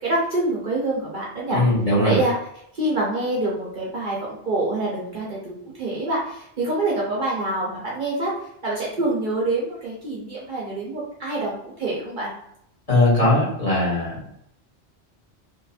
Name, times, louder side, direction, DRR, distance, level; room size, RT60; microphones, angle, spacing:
voice 1, 0.0-1.6 2.0-2.3 2.7-8.3 8.6-12.3, right 2 dB, 55° right, -5 dB, 0.7 m, -26 dB
voice 2, 1.5-2.2 12.9-14.2, left 2 dB, 35° left, -8 dB, 1.2 m, -19 dB
2.7 x 2.4 x 2.4 m, 0.74 s
omnidirectional pair, 1.1 m